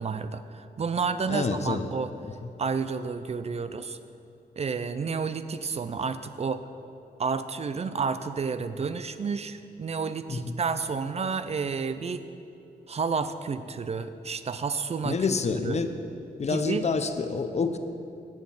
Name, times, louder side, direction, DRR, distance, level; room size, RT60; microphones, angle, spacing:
voice 1, 0.0-2.1 2.6-4.0 4.6-6.7 7.2-12.2 12.9-15.2 15.6-15.8 16.5-16.8, right 5 dB, 40° right, 11 dB, 0.4 m, -30 dB
voice 2, 1.3-1.9 10.3-10.5 15.0-16.0 16.4-17.8, left 4 dB, 45° left, 9 dB, 0.6 m, -28 dB
7.7 x 7.2 x 7.6 m, 2.8 s
wide cardioid pair, 100°, 16 cm